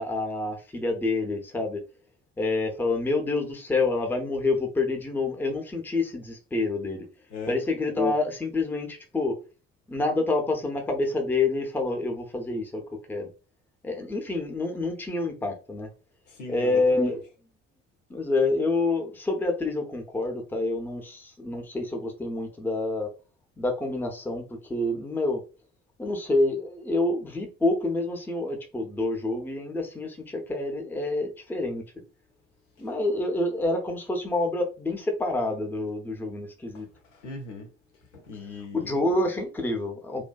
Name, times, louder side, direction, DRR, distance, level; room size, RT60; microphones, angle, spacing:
voice 1, 0.0-1.8 2.4-7.1 7.5-9.4 9.9-13.3 13.8-15.9 16.5-17.2 18.1-23.1 23.6-25.4 26.0-31.8 32.8-36.9 38.7-40.2, left 2 dB, 5° left, 0.5 m, -27 dB
voice 2, 16.3-17.2 37.1-37.7 38.1-38.9, left 4 dB, 75° left, 0.6 m, -39 dB
2.6 x 2.1 x 2.2 m
figure-of-eight pair, 50°, 36 cm